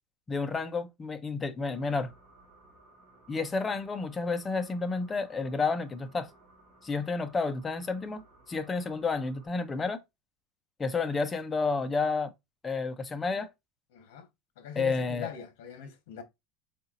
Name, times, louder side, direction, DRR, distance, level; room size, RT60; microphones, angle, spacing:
voice 1, 0.3-2.1 3.3-6.3 6.8-10.0 10.8-12.3 12.6-13.5 14.8-15.3, left 4 dB, 15° left, 0.4 m, -30 dB
sound 1, 1.7-9.5, right 2 dB, 35° right, 2.3 m, -59 dB
voice 2, 13.9-14.3 14.6-16.2, left 9 dB, 70° left, 1.0 m, -41 dB
4.2 x 3.8 x 2.4 m
cardioid pair, 180°, 0 cm